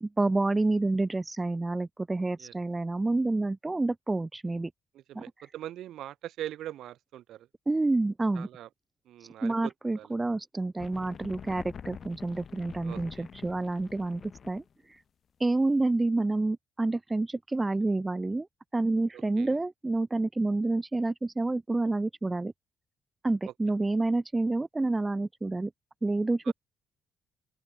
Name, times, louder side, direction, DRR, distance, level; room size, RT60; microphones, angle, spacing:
voice 1, 0.0-4.7 5.1-5.2 7.7-8.5 9.4-14.6 15.4-18.5 18.7-22.5 23.2-25.7 26.0-26.5, right 2 dB, 20° right, 0.4 m, -28 dB
voice 2, 4.9-7.5 8.3-8.7 9.0-10.1 12.8-13.3 19.1-19.6 26.4-26.5, right 12 dB, 80° right, 1.1 m, -42 dB
sound 1, 10.8-14.7, left 7 dB, 50° left, 4.6 m, -46 dB
open air
cardioid pair, 90°, 0 cm